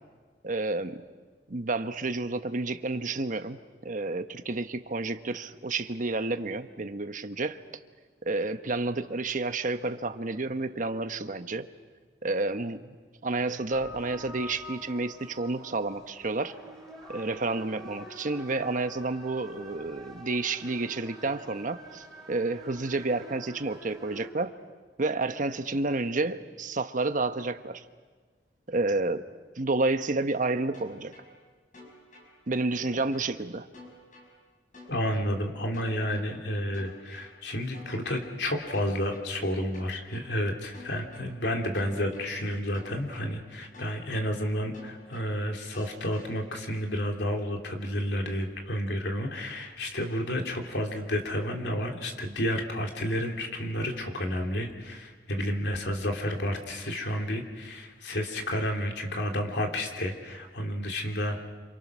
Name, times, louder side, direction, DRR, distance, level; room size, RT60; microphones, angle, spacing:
voice 1, 0.4-1.0 1.5-7.6 8.3-11.7 12.2-12.9 13.2-16.5 17.1-24.5 25.0-27.8 28.7-29.2 29.6-31.1 32.5-33.7, right 3 dB, 50° right, 9 dB, 1.1 m, -30 dB
sound 1, 13.7-24.3, equal, 5° left, 5.7 m, -47 dB
sound 2, 30.7-31.3 31.7-32.3 32.7-33.3 33.7-34.3 34.7-35.3 35.7-36.3 36.7-37.3 37.7-38.3 38.7-39.3 39.7-40.3 40.7-41.3 41.7-42.3 42.7-43.3 43.7-44.3 44.7-45.3 45.7-46.3, left 2 dB, 50° left, 6.2 m, -49 dB
voice 2, 34.9-61.4, equal, 70° left, 2 dB, 3.1 m, -31 dB
28.0 x 27.0 x 6.2 m, 1.4 s
head